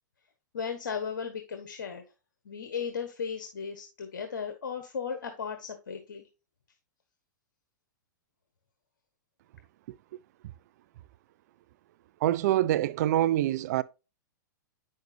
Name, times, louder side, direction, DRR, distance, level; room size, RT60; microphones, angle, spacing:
voice 1, 0.5-2.0 2.4-6.2, left 6 dB, 80° left, 1.3 m, -36 dB
voice 2, 9.9-10.2 12.2-13.8, right 13 dB, 60° right, 0.5 m, -26 dB
9.2 x 6.4 x 2.7 m
hypercardioid pair, 120°, 10 cm